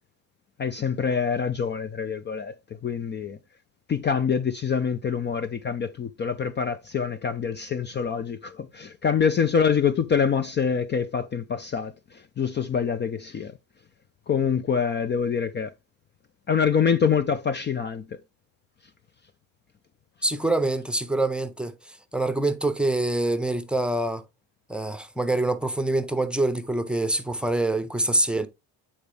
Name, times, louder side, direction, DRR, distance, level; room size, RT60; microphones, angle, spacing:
voice 1, 0.6-2.5 2.8-3.4 3.9-13.5 14.3-15.7 16.5-18.2, left 6 dB, 30° left, 0.5 m, -25 dB
voice 2, 20.2-24.2 24.7-28.5, right 2 dB, 5° right, 0.8 m, -25 dB
8.7 x 4.2 x 3.3 m
cardioid pair, 100°, 36 cm